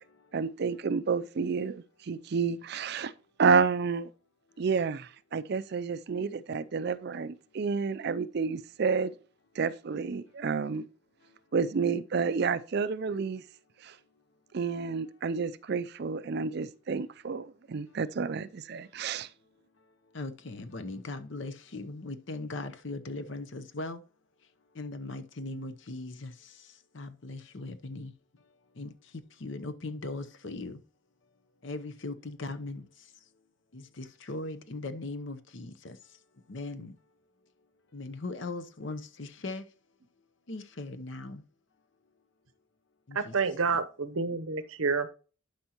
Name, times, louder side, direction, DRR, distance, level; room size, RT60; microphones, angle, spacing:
voice 1, 0.3-3.1 3.4-4.1 4.6-9.1 9.6-10.8 11.5-13.4 13.8-13.9 14.5-19.3, right 5 dB, 50° right, 0.4 m, -30 dB
voice 2, 20.1-24.0 24.8-26.3 26.9-28.1 28.8-28.9 29.4-30.8 31.6-32.8 33.7-36.0 36.5-36.9 37.9-39.6 40.5-41.4 43.1-43.3 43.7-43.8, left 2 dB, 60° left, 0.8 m, -39 dB
voice 3, 43.1-45.1, right 4 dB, 80° right, 0.8 m, -29 dB
11.5 x 5.3 x 2.9 m
head